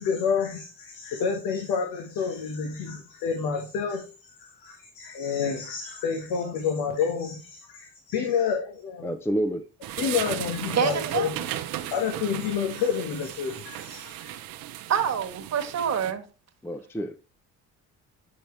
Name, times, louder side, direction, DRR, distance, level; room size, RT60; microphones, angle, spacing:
voice 1, 0.0-4.0 4.4-9.1 10.0-11.4 11.8-14.4, left 6 dB, 90° left, 1.2 m, -29 dB
voice 2, 9.0-9.6 16.6-17.2, right 1 dB, 5° left, 0.5 m, -28 dB
sound 1, 9.8-16.1, right 13 dB, 90° right, 0.7 m, -36 dB
voice 3, 10.8-11.3 14.9-16.2, right 8 dB, 50° right, 1.3 m, -26 dB
8.8 x 5.2 x 3.1 m
cardioid pair, 85°, 34 cm